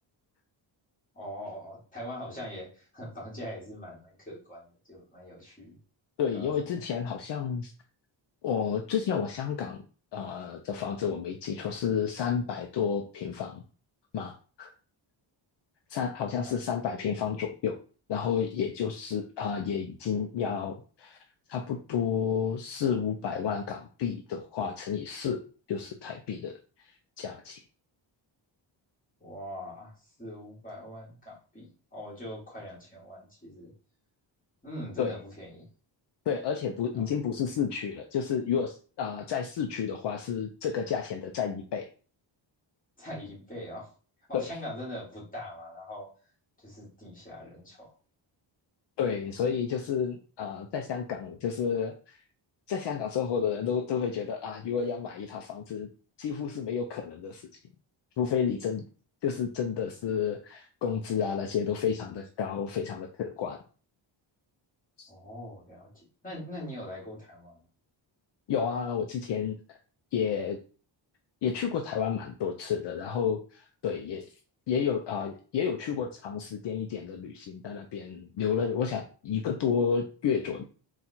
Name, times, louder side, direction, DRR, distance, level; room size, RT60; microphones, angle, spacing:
voice 1, 1.1-5.7 6.3-6.8 16.4-16.6 29.2-33.7 34.6-35.6 36.9-37.1 43.0-43.9 44.3-46.1 46.6-47.9 65.1-67.6, equal, 15° left, -6 dB, 2.2 m, -42 dB
voice 2, 6.2-7.7 8.4-9.8 10.1-13.6 14.1-14.7 15.9-17.8 18.1-21.2 21.5-25.4 25.7-26.5 26.8-27.6 35.0-35.2 36.3-41.9 44.3-44.6 49.0-52.2 52.7-55.9 56.2-57.5 58.2-58.8 59.2-63.6 65.0-65.1 68.5-69.8 70.1-70.6 71.4-74.3 74.7-80.6, left 7 dB, 60° left, 3 dB, 0.6 m, -31 dB
4.0 x 2.4 x 4.3 m, 0.38 s
wide cardioid pair, 165°, 47 cm